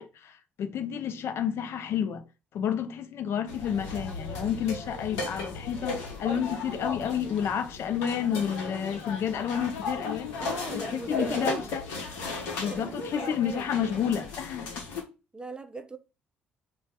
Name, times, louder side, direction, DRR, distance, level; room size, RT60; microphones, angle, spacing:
voice 1, 0.0-2.2 2.5-10.3 10.9-11.8 12.6-14.7, left 8 dB, 55° left, 0.4 m, -30 dB
sound 1, 3.5-15.0, left 3 dB, 75° left, 0.8 m, -36 dB
voice 2, 10.4-11.7 12.7-13.6 15.3-16.0, right 2 dB, 20° right, 0.4 m, -39 dB
2.6 x 2.1 x 3.2 m
hypercardioid pair, 50°, 5 cm